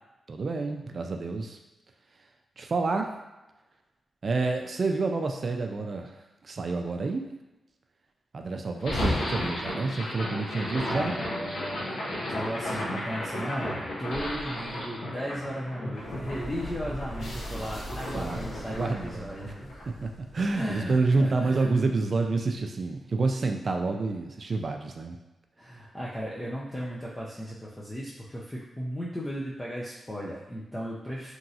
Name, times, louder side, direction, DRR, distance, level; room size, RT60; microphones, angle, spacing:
voice 1, 0.3-1.6 2.6-3.1 4.2-6.1 6.4-7.2 8.3-11.1 18.1-19.4 20.0-25.2, right 3 dB, 55° right, 4 dB, 0.4 m, -28 dB
sound 1, 8.8-21.0, left 1 dB, 85° left, 0.7 m, -34 dB
voice 2, 10.9-19.9 20.5-21.7 25.6-31.3, equal, 15° left, -6 dB, 0.5 m, -36 dB
3.0 x 2.6 x 2.7 m, 1.0 s
cardioid pair, 65°, 0 cm